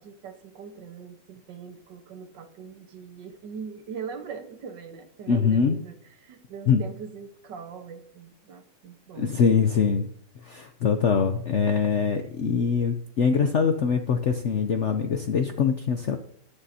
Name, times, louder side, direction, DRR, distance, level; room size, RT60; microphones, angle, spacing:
voice 1, 0.0-9.3, right 6 dB, 75° right, 8 dB, 1.7 m, -41 dB
voice 2, 5.3-5.8 6.7-6.8 9.2-10.1 10.4-16.2, left 6 dB, 65° left, 6 dB, 0.7 m, -23 dB
19.5 x 6.8 x 2.8 m, 0.63 s
omnidirectional pair, 2.0 m